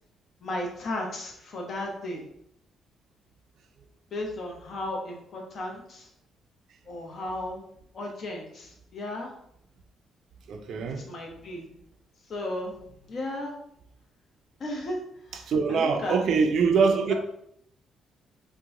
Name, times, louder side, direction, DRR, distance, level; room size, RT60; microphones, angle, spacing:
voice 1, 0.4-2.2 4.1-6.1 6.9-7.6 7.9-9.3 11.0-11.7 12.3-12.7 13.1-13.5 14.6-15.0 15.7-16.2, left 1 dB, 55° left, 0.8 m, -34 dB
voice 2, 10.5-11.1 15.3-17.1, right 5 dB, 65° right, 0.4 m, -24 dB
2.9 x 2.2 x 3.6 m
cardioid pair, 90°, 0 cm